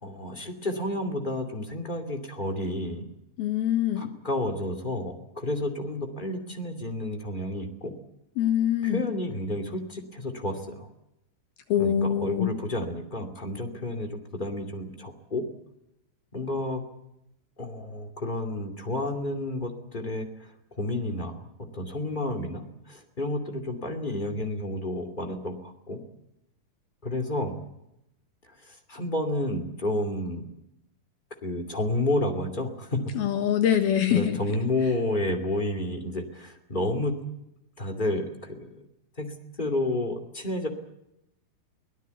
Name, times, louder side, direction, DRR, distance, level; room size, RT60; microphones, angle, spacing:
voice 1, 0.0-3.1 3.9-7.9 8.8-10.9 11.8-15.4 16.3-16.8 17.6-26.0 27.0-27.6 28.6-30.5 31.4-33.0 34.1-37.3 37.8-38.9 39.2-40.7, left 1 dB, 20° left, 3 dB, 1.6 m, -31 dB
voice 2, 3.4-4.1 8.4-9.1 11.7-12.5 33.1-34.4, left 10 dB, 70° left, 7 dB, 3.2 m, -24 dB
24.0 x 18.0 x 8.2 m, 0.84 s
omnidirectional pair, 4.8 m